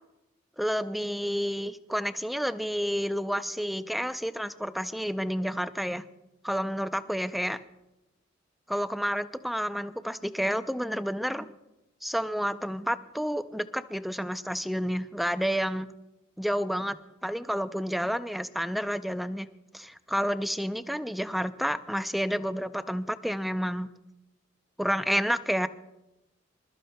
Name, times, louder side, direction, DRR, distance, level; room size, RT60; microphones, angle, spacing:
voice 1, 0.6-6.0 6.4-7.6 8.7-11.5 12.0-15.9 16.4-17.0 17.2-19.5 19.7-23.9 24.8-25.7, equal, ahead, 11 dB, 0.4 m, -30 dB
25.5 x 13.0 x 2.2 m, 0.95 s
head